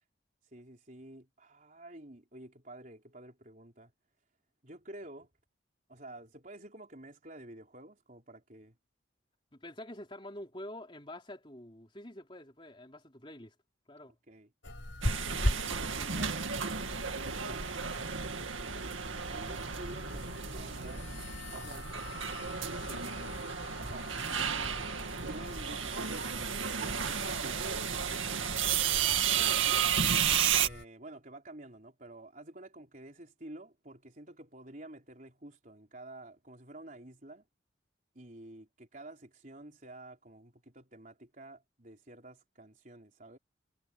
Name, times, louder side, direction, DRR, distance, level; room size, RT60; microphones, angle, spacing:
voice 1, 0.5-3.9 4.6-5.3 5.9-8.7 14.3-14.5 15.3-16.5 17.1-18.0 19.3-21.1 21.5-22.2 23.8-29.8 30.5-37.4 38.1-43.4, right 1 dB, 40° right, 4.2 m, -50 dB
voice 2, 9.5-13.6 13.9-14.1 22.7-23.3, left 1 dB, 25° left, 3.5 m, -47 dB
sound 1, 14.6-30.8, left 1 dB, 75° left, 4.8 m, -41 dB
sound 2, 15.0-30.7, right 8 dB, 90° right, 2.2 m, -33 dB
head